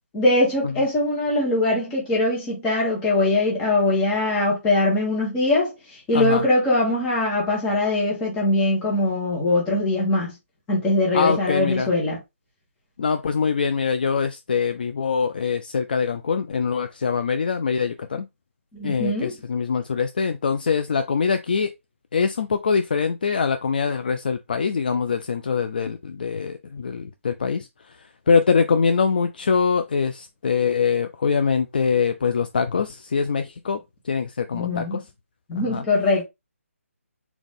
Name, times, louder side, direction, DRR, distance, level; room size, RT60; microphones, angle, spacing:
voice 1, 0.1-5.7 6.1-10.3 10.7-12.2 18.7-19.3 34.5-35.0 35.5-36.2, left 2 dB, 10° left, 1.4 m, -22 dB
voice 2, 6.1-6.5 11.1-11.9 13.0-18.3 18.8-21.7 22.1-33.8 34.0-35.0 35.5-35.8, left 5 dB, 40° left, 0.4 m, -23 dB
4.0 x 2.8 x 3.7 m
hypercardioid pair, 170°, 8 cm